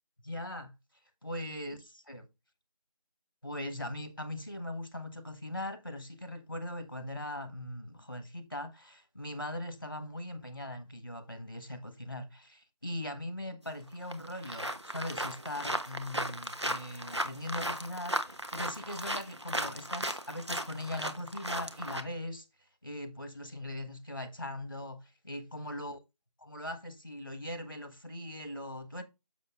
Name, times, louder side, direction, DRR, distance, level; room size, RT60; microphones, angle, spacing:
voice 1, 0.2-0.7 1.2-2.3 3.4-22.5 22.8-26.0 26.4-29.0, left 1 dB, 35° left, 1.3 m, -40 dB
sound 1, 13.7-13.8 14.1-22.0, right 1 dB, 45° right, 1.1 m, -36 dB
7.0 x 6.7 x 3.5 m
figure-of-eight pair, 175°, 20 cm